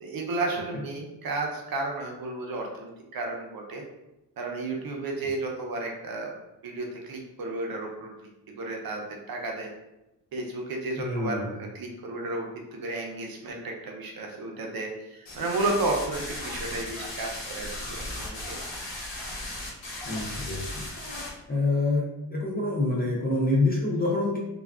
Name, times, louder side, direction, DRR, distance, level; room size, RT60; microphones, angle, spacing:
voice 1, 0.0-3.8 4.4-6.3 6.6-8.1 8.5-9.7 10.3-18.6, right 2 dB, 55° right, 0 dB, 0.6 m, -33 dB
voice 2, 11.0-11.5 20.1-20.7 21.5-22.0 22.3-24.4, left 2 dB, 25° left, -3 dB, 0.4 m, -26 dB
sound 1, 15.3-21.3, left 1 dB, 80° left, 1.2 m, -36 dB
3.3 x 2.3 x 2.3 m, 0.94 s
wide cardioid pair, 150°, 43 cm